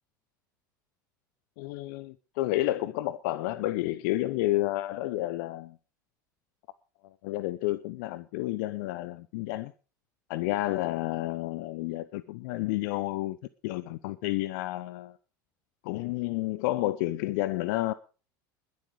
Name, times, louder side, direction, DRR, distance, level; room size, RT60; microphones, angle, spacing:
voice 1, 1.6-5.8 7.2-9.7 10.3-13.4 13.6-15.2 15.8-17.9, left 16 dB, 65° left, 0.8 m, -30 dB
20.5 x 8.1 x 4.8 m
hypercardioid pair, 75°, 11 cm